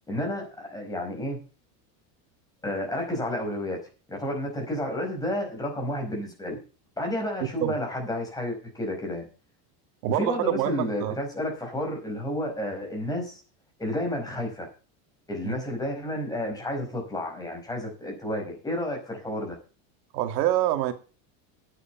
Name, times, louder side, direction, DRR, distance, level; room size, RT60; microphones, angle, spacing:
voice 1, 0.1-1.4 2.6-3.8 4.1-6.6 7.0-9.3 10.1-13.4 13.8-14.7 15.3-19.6, left 1 dB, 5° left, 0 dB, 5.0 m, -31 dB
voice 2, 7.4-7.7 10.0-11.2 15.4-15.5 20.1-20.9, right 12 dB, 85° right, 8 dB, 2.1 m, -26 dB
9.9 x 8.7 x 7.1 m, 0.34 s
supercardioid pair, 160°, 48 cm